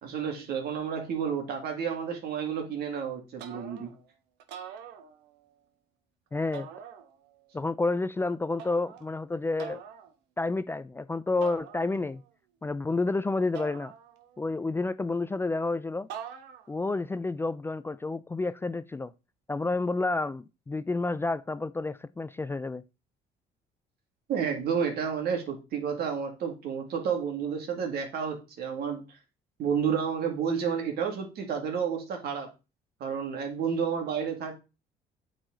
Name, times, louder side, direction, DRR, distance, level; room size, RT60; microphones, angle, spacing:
voice 1, 0.0-3.9 24.3-29.2 29.6-32.5 33.0-34.5, right 7 dB, 70° right, 2.3 m, -31 dB
sound 1, 3.4-4.0 4.4-5.5 6.5-7.4 8.6-9.1 9.6-10.1 11.4-12.2 13.5-14.5 16.1-16.8, right 8 dB, 85° right, 1.1 m, -44 dB
voice 2, 6.3-6.7 7.5-9.8 10.4-12.2 12.6-13.9 14.4-16.1 16.7-19.1 19.5-22.8, left 3 dB, 15° left, 0.3 m, -30 dB
8.8 x 4.7 x 3.9 m
cardioid pair, 110°, 17 cm